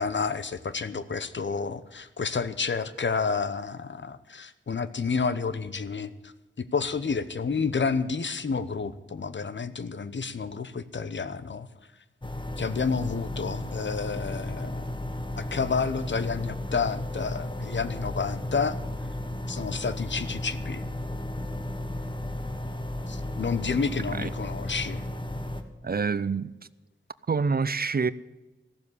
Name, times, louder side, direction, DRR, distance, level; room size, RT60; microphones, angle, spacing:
voice 1, 0.0-6.3 6.6-11.7 12.6-14.8 15.4-18.8 19.5-20.8 23.1-25.0, left 5 dB, 60° left, 0.9 m, -30 dB
sound 1, 12.2-25.6, left 1 dB, 25° left, 1.4 m, -34 dB
voice 2, 25.8-26.5 27.3-28.1, right 5 dB, 45° right, 0.5 m, -26 dB
15.0 x 7.2 x 9.8 m
cardioid pair, 50°, 21 cm